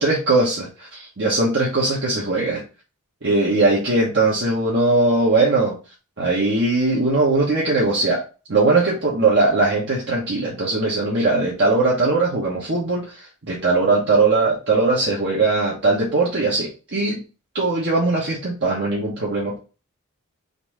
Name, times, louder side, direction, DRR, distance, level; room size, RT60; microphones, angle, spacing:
voice 1, 0.0-2.6 3.2-5.7 6.2-8.2 8.5-17.2 17.5-19.6, right 3 dB, 50° right, -5 dB, 1.1 m, -20 dB
3.9 x 2.7 x 4.7 m, 0.34 s
head